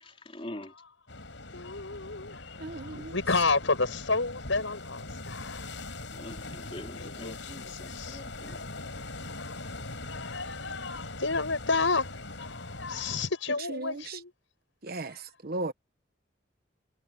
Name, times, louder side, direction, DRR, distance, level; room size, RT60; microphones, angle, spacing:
voice 1, 0.0-0.7 2.9-3.0 6.1-8.6, left 1 dB, 30° left, 3.4 m, -44 dB
voice 2, 0.5-0.9 1.1-1.2 1.5-5.6 7.0-8.2 9.3-9.5 10.1-12.1 12.4-14.3 15.0-15.1, left 3 dB, 90° left, 5.8 m, -31 dB
sound 1, 1.1-13.3, left 2 dB, 70° left, 6.6 m, -41 dB
voice 3, 2.6-3.1 13.7-14.2 14.8-15.7, right 2 dB, 55° right, 1.1 m, -36 dB
head